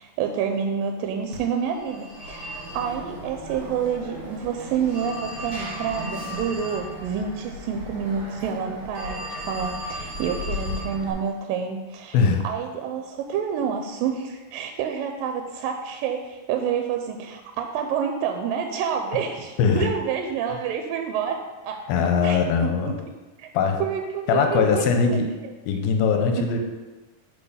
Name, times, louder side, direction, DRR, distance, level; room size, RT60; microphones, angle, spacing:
voice 1, 0.0-12.2 12.4-21.8 22.2-23.0 23.4-23.5 23.8-25.2, right 7 dB, 80° right, 5 dB, 2.2 m, -28 dB
Telephone, 1.3-11.1, left 1 dB, 35° right, 1.9 m, -35 dB
voice 2, 12.1-12.4 19.6-19.9 21.9-22.9 23.5-23.8 24.3-25.3 25.7-26.6, left 5 dB, 85° left, 4 dB, 2.5 m, -21 dB
6.9 x 4.4 x 5.5 m, 1.2 s
omnidirectional pair, 4.2 m